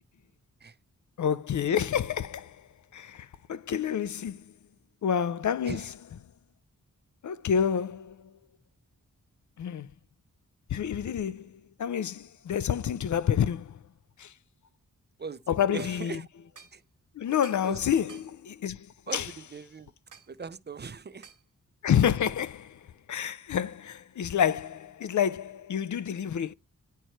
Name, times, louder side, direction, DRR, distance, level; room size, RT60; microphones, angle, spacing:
voice 1, 1.2-2.6 2.9-4.5 5.0-5.9 7.2-8.2 9.6-9.9 10.7-11.5 11.8-13.8 14.2-14.3 15.5-16.2 17.2-18.9 19.1-19.3 21.8-22.8 23.1-26.5, left 8 dB, 65° left, 0.5 m, -28 dB
voice 2, 15.2-16.3 16.7-16.8 17.6-17.8 18.1-18.2 19.1-19.9 20.3-21.3, right 5 dB, 35° right, 0.5 m, -40 dB
sound 1, 15.8-16.0 16.6-16.8 17.4-17.7 18.1-18.3 19.1-19.3 20.1-20.3 21.2-21.4, right 6 dB, 70° right, 1.5 m, -51 dB
10.0 x 4.6 x 4.5 m
wide cardioid pair, 160°, 32 cm